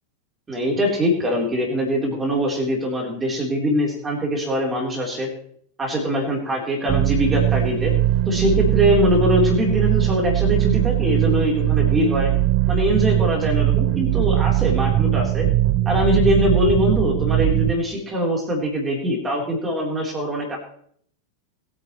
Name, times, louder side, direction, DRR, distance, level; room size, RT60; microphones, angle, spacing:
voice 1, 0.5-5.3 5.8-7.9 8.3-12.3 12.7-15.5 15.9-20.6, equal, 15° right, -1 dB, 3.8 m, -22 dB
sound 1, 6.9-17.7, right 14 dB, 35° right, 0.6 m, -20 dB
21.5 x 9.7 x 3.2 m, 0.63 s
figure-of-eight pair, 90°, 0 cm